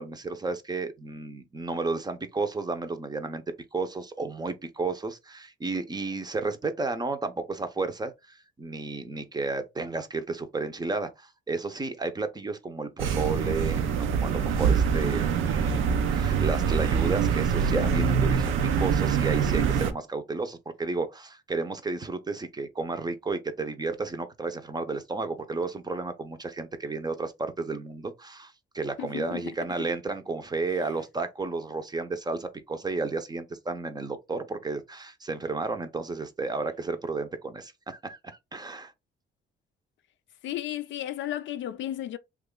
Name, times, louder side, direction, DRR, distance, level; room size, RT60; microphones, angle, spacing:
voice 1, 0.0-3.4 3.7-38.2 38.5-38.9, right 3 dB, 20° right, 0.6 m, -32 dB
sound 1, 13.0-19.9, right 6 dB, 85° right, 0.5 m, -24 dB
voice 2, 29.0-29.5 40.4-42.2, left 12 dB, 70° left, 0.4 m, -34 dB
3.0 x 2.3 x 3.6 m
cardioid pair, 90°, 20 cm